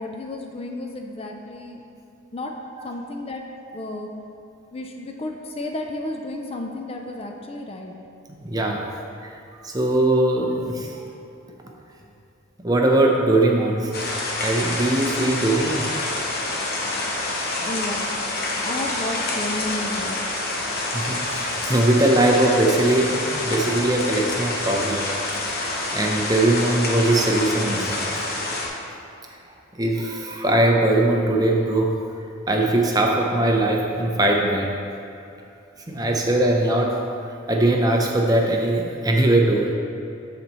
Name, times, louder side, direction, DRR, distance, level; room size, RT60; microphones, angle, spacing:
voice 1, 0.0-1.8 2.3-2.5 2.8-3.4 3.7-4.1 4.7-7.9 17.6-18.1 18.5-20.2, left 2 dB, 30° left, 2 dB, 0.4 m, -32 dB
voice 2, 8.3-8.9 9.2-9.3 9.6-10.9 12.6-13.9 14.4-15.9 20.9-25.1 25.6-28.0 29.8-31.9 32.5-34.7 35.9-37.0 37.5-39.7, right 1 dB, 20° right, 1 dB, 0.6 m, -20 dB
sound 1, 13.9-28.7, left 2 dB, 50° left, 1.0 m, -27 dB
12.5 x 4.2 x 3.0 m, 2.7 s
head